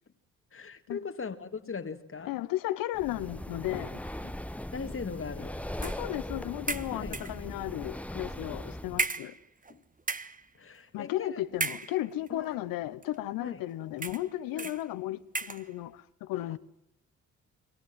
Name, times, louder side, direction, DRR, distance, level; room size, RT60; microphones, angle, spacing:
voice 1, 0.5-2.4 4.2-4.4 4.7-5.6 6.9-7.2 9.2-9.3 9.7-9.8 10.5-11.4 12.3-12.5 13.4-13.6 14.5-14.7 16.4-16.5, left 5 dB, 40° left, 2.1 m, -40 dB
voice 2, 2.3-4.0 5.8-9.3 10.9-16.6, left 15 dB, 80° left, 1.2 m, -34 dB
Breathing, 2.9-9.1, left 1 dB, 5° left, 1.2 m, -39 dB
sound 1, 5.8-6.1 6.7-7.4 8.3-8.4 9.0-9.7 10.0-10.4 11.5-12.3 13.0-13.1 14.0-14.3 14.6-14.8 15.3-15.7, right 3 dB, 25° right, 1.5 m, -34 dB
28.0 x 23.0 x 7.6 m
hypercardioid pair, 50°, 34 cm